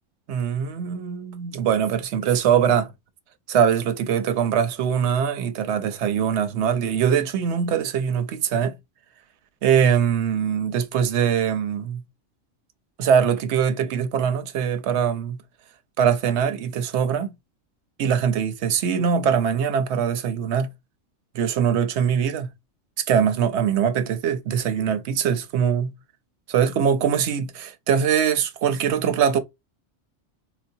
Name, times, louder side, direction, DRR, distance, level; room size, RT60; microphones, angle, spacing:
voice 1, 0.3-2.9 3.5-8.7 9.6-12.0 13.0-15.4 16.0-17.3 18.0-20.7 21.3-22.5 23.0-25.9 26.5-29.4, right 8 dB, 65° right, 0.9 m, -22 dB
4.0 x 2.1 x 2.6 m
omnidirectional pair, 1.3 m